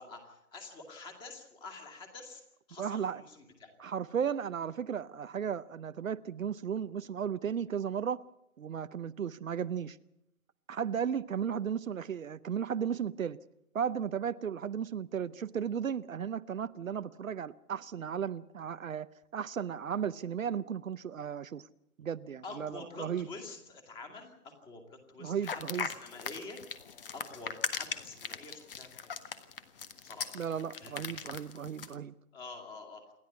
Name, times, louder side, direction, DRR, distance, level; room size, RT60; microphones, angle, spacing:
voice 1, 0.0-2.4 2.7-3.7 22.4-26.6 27.1-29.3 30.0-30.4 30.8-31.1 32.3-33.0, left 3 dB, 10° left, 2.3 m, -47 dB
voice 2, 2.8-3.2 3.8-8.2 8.6-10.0 10.7-13.4 13.7-19.1 19.3-21.6 22.0-23.3 25.2-25.9 30.3-32.1, right 8 dB, 65° right, 0.7 m, -35 dB
sound 1, 25.4-31.9, left 7 dB, 40° left, 1.5 m, -39 dB
28.5 x 11.5 x 9.7 m
figure-of-eight pair, 150°, 44 cm